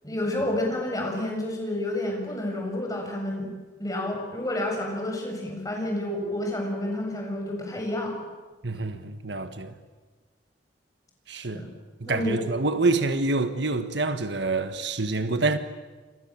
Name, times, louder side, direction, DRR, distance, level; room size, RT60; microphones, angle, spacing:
voice 1, 0.0-3.5 3.8-8.2 8.7-8.8 11.4-11.7 12.1-12.3, left 1 dB, 20° left, 7.3 m, -30 dB
voice 2, 8.6-9.7 11.3-11.7 12.0-15.6, right 3 dB, 65° right, 1.6 m, -26 dB
28.0 x 28.0 x 7.6 m
head